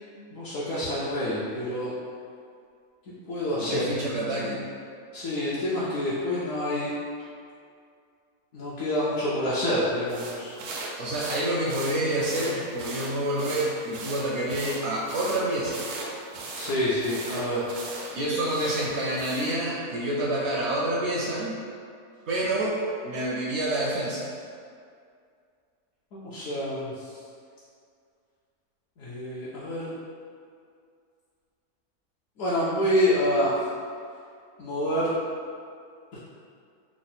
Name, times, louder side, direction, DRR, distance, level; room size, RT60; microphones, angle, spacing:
voice 1, 0.3-1.9 3.1-3.9 4.4-4.5 5.1-6.9 8.5-10.6 16.6-17.7 26.1-27.2 29.0-29.9 32.4-33.5 34.6-35.1 36.1-36.2, left 1 dB, 70° left, -8 dB, 0.9 m, -27 dB
voice 2, 3.6-4.6 7.2-7.3 11.0-15.8 18.1-21.5 22.3-24.3, right 1 dB, 65° right, -4 dB, 0.7 m, -28 dB
sound 1, 10.1-19.6, right 2 dB, 85° right, 1.1 m, -38 dB
3.5 x 2.1 x 4.0 m, 2.3 s
omnidirectional pair, 1.6 m